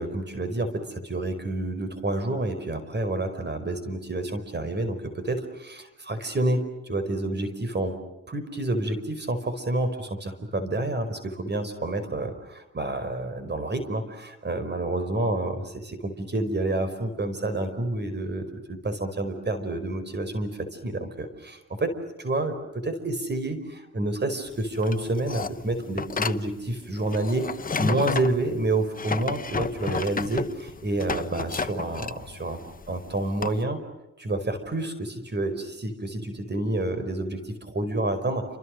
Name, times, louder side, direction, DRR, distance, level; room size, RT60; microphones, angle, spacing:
voice 1, 0.0-8.0 8.3-32.6 32.9-33.8 34.2-38.5, right 2 dB, 35° right, 10 dB, 4.9 m, -29 dB
sound 1, 24.5-33.6, left 5 dB, 30° left, 1.1 m, -32 dB
29.0 x 26.5 x 6.5 m, 0.97 s
cardioid pair, 75°, 29 cm